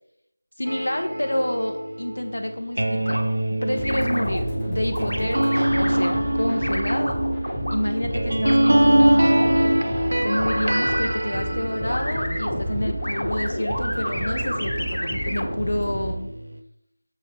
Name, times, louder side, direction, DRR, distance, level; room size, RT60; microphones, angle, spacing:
voice 1, 0.6-3.2 3.6-7.2 7.7-9.5 10.2-16.3, left 1 dB, 65° left, 5 dB, 1.0 m, -28 dB
sound 1, 0.7-13.2 13.7-16.6, right 1 dB, 60° right, 0.7 m, -24 dB
sound 2, 3.1-3.2 3.8-4.4 4.9-6.1 6.6-7.7 8.5-9.7 10.3-11.0 11.8-15.5, equal, 80° left, 1.4 m, -30 dB
sound 3, 3.7-16.1, equal, 5° left, 1.0 m, -31 dB
6.8 x 6.0 x 3.5 m, 0.77 s
figure-of-eight pair, 170°, 0 cm